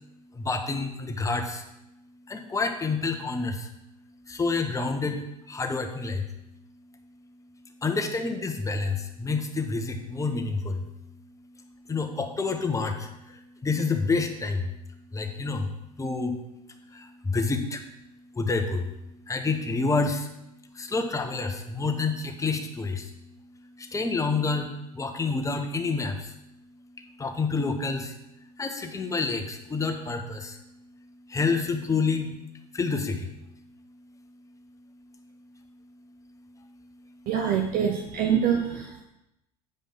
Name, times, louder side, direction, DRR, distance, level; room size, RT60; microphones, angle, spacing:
voice 1, 0.3-1.6 2.3-3.7 4.3-6.2 7.8-10.9 11.8-14.7 15.1-15.7 16.0-16.4 16.7-17.9 18.3-20.3 20.7-23.1 23.6-26.4 27.2-28.2 28.6-30.6 31.3-32.3 32.7-33.3 36.6-36.7, left 4 dB, 15° left, 4 dB, 1.2 m, -28 dB
voice 2, 37.3-39.0, right 8 dB, 45° right, 3 dB, 0.8 m, -25 dB
7.8 x 5.1 x 5.8 m, 0.88 s
figure-of-eight pair, 75°, 20 cm